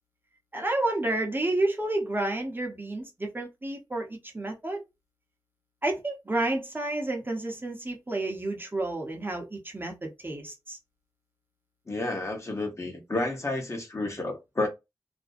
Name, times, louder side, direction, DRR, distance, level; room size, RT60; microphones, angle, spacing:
voice 1, 0.5-4.8 5.8-10.8, right 2 dB, 25° right, 0.7 m, -30 dB
voice 2, 11.9-14.7, left 2 dB, 35° left, 0.9 m, -31 dB
2.5 x 2.1 x 2.4 m
wide cardioid pair, 65°, 8 cm